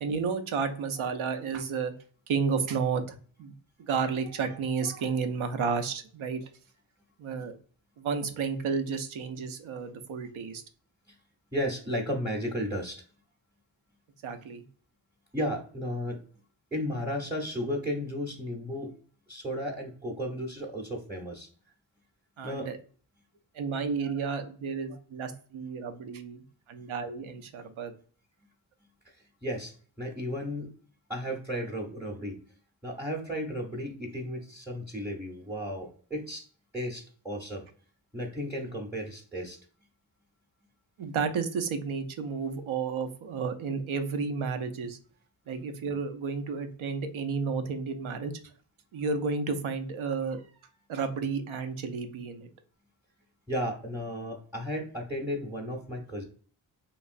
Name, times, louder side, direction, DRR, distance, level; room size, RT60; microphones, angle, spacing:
voice 1, 0.0-2.0 2.3-6.4 7.2-7.5 8.0-10.6 14.2-14.6 22.4-22.8 23.5-27.9 41.0-45.0 45.5-48.3 48.9-50.4 50.9-52.5, right 5 dB, 85° right, 8 dB, 0.6 m, -32 dB
voice 2, 11.5-13.0 15.3-16.2 16.7-18.9 19.3-21.5 22.4-22.7 29.4-30.7 31.1-32.4 32.8-36.5 36.7-37.6 38.1-39.6 53.5-56.2, equal, 5° right, 0 dB, 0.6 m, -34 dB
3.1 x 2.4 x 2.5 m, 0.43 s
wide cardioid pair, 100°, 47 cm